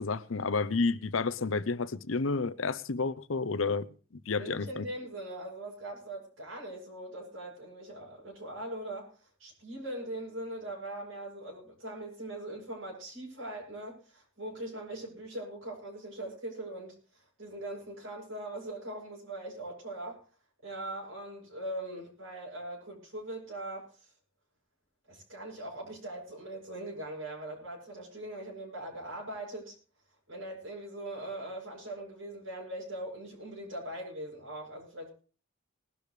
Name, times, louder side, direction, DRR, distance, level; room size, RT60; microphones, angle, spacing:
voice 1, 0.0-3.9 4.1-4.8, left 4 dB, 70° left, 0.7 m, -30 dB
voice 2, 4.3-9.1 9.4-16.9 17.4-20.2 20.6-23.9 25.1-29.7 30.3-35.1, right 1 dB, 70° right, 7.8 m, -41 dB
20.5 x 12.0 x 3.3 m
head